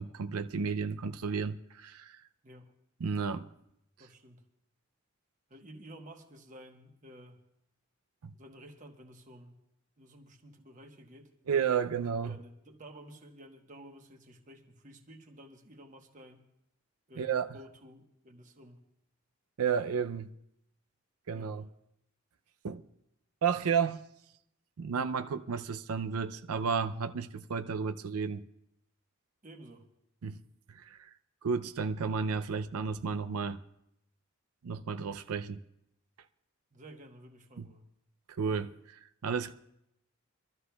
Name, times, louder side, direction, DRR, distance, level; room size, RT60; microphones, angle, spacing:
voice 1, 0.0-2.2 3.0-3.5 8.2-8.3 11.5-12.4 17.2-17.5 19.6-20.3 21.3-21.7 22.6-22.8 23.4-24.0 24.8-28.4 30.2-30.4 30.7-31.0 31.4-33.6 34.6-35.6 37.6-37.7 38.3-39.5, right 6 dB, 85° right, 0.5 m, -32 dB
voice 2, 4.0-4.4 5.5-7.4 8.3-9.6 10.0-11.3 12.2-16.4 17.1-18.8 21.3-21.7 29.4-29.9 36.7-37.9, right 1 dB, 35° right, 1.1 m, -52 dB
24.5 x 13.0 x 2.3 m
head